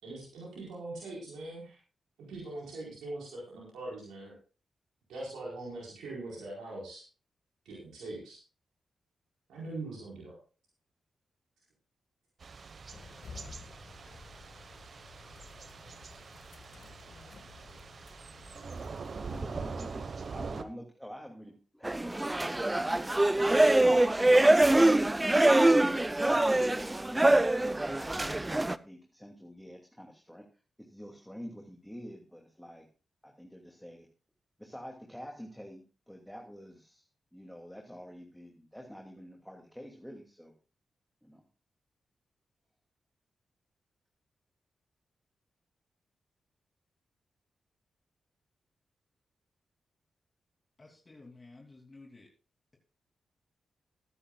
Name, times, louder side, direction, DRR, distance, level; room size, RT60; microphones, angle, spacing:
voice 1, 0.0-1.8 2.2-4.3 5.1-7.0 7.6-8.4 9.5-10.4, right 2 dB, 85° right, -5 dB, 4.5 m, -42 dB
Thunder / Rain, 12.4-20.6, right 4 dB, 60° right, 1.2 m, -43 dB
sound 1, 12.9-19.5, left 4 dB, 70° left, 1.8 m, -52 dB
voice 2, 19.2-25.2 26.1-30.4 30.8-32.9 33.2-34.1 34.6-37.0 37.3-40.5 41.2-41.4, equal, 5° left, 1 dB, 2.5 m, -47 dB
sound 2, 21.8-28.7, right 1 dB, 20° right, 0.6 m, -24 dB
voice 3, 50.8-52.3, left 3 dB, 35° left, 0 dB, 2.9 m, -53 dB
20.5 x 10.0 x 2.4 m, 0.34 s
supercardioid pair, 45°, 0 cm